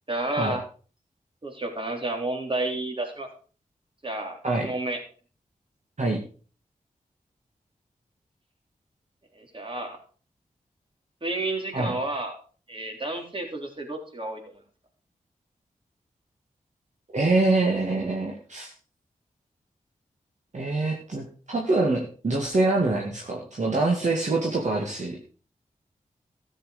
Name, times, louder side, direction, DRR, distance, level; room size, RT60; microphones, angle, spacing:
voice 1, 0.1-0.6 1.4-3.3 4.0-5.0 9.4-10.0 11.2-12.4 12.7-14.5, right 2 dB, 40° right, 3 dB, 3.8 m, -31 dB
voice 2, 17.1-18.7 20.5-25.2, right 2 dB, 55° right, -1 dB, 2.3 m, -25 dB
13.0 x 8.1 x 5.0 m, 0.40 s
cardioid pair, 50°, 14 cm